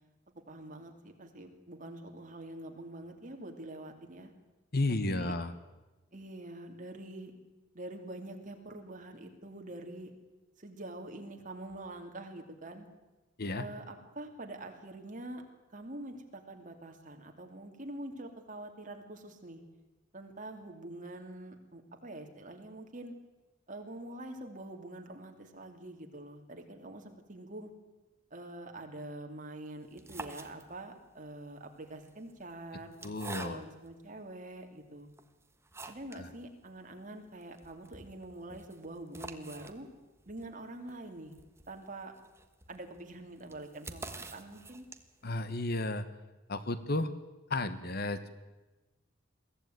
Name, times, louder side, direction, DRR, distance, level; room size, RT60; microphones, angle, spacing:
voice 1, 0.5-4.3 5.1-5.3 6.1-7.3 7.7-10.1 10.6-12.9 13.5-15.4 15.7-19.6 20.1-23.1 23.7-27.7 28.3-32.9 33.4-35.1 35.9-39.9 40.3-41.3 41.7-42.2 42.7-44.9, right 1 dB, 40° right, 4 dB, 2.8 m, -45 dB
voice 2, 4.7-5.5 13.4-13.6 33.0-33.6 36.1-36.3 45.2-46.1 46.5-47.1 47.5-48.3, left 2 dB, 55° left, 12 dB, 1.3 m, -33 dB
sound 1, 29.8-31.0 31.9-33.9 34.6-34.7 35.1-36.3 36.6-36.7 37.0-37.1 37.4-45.3, right 3 dB, 15° right, 1.4 m, -48 dB
22.5 x 15.0 x 9.3 m, 1.1 s
head